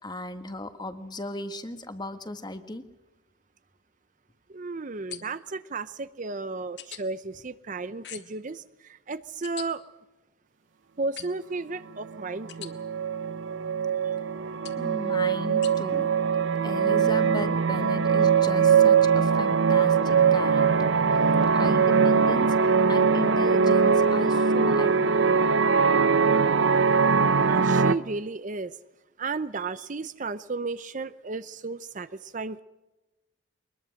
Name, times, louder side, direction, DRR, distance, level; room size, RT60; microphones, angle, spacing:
voice 1, 0.0-2.8 14.8-16.1 16.6-21.0 21.5-22.6 22.9-25.6, left 1 dB, 20° left, 9 dB, 1.5 m, -36 dB
voice 2, 4.5-9.8 11.0-12.8 27.4-28.8 29.2-32.6, right 3 dB, 40° right, 14 dB, 0.6 m, -33 dB
sound 1, 5.1-5.5 6.8-7.0 8.0-8.4 9.4-9.7 11.2-11.5 12.5-12.7 14.6-14.9 15.6-15.7, left 10 dB, 60° left, 1.8 m, -41 dB
sound 2, 12.1-12.2 12.5-27.9, right 5 dB, 75° right, 0.8 m, -21 dB
23.0 x 21.0 x 6.4 m, 1.0 s
head